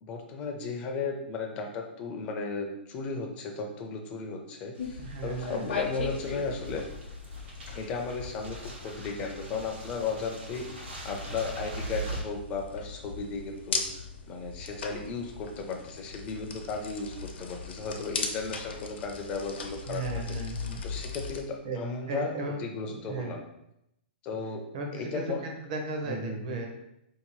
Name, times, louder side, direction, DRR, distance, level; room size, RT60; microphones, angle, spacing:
voice 1, 0.0-6.8 7.7-20.4 20.8-22.3 22.6-23.4 24.2-24.6 24.9-25.4 26.1-26.7, left 4 dB, 20° left, 3 dB, 0.4 m, -35 dB
sound 1, 4.7-12.2, right 2 dB, 80° right, 1.2 m, -42 dB
sound 2, 4.8-21.4, left 5 dB, 75° left, 0.6 m, -39 dB
voice 2, 5.0-5.7 19.9-20.8 21.6-21.8 22.1-22.6 22.9-23.4 24.7-26.7, right 3 dB, 40° right, 2 dB, 0.7 m, -36 dB
3.9 x 2.7 x 3.0 m, 0.81 s
hypercardioid pair, 170°, 6 cm